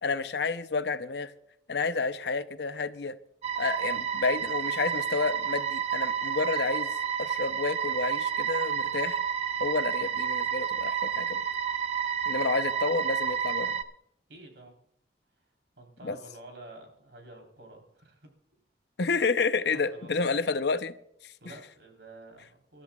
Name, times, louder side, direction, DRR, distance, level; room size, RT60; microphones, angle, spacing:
voice 1, 0.0-1.3 1.7-3.1 3.6-6.9 7.2-9.2 9.6-11.4 12.3-13.8 16.0-16.2 19.0-20.9 21.2-21.3, left 4 dB, 65° left, 11 dB, 0.7 m, -30 dB
sound 1, 3.4-13.8, right 8 dB, 35° right, 0.8 m, -30 dB
voice 2, 14.3-14.7 15.8-18.3 19.9-20.3 21.4-22.8, right 2 dB, 85° right, 2 dB, 3.8 m, -49 dB
27.0 x 13.0 x 2.4 m, 0.72 s
head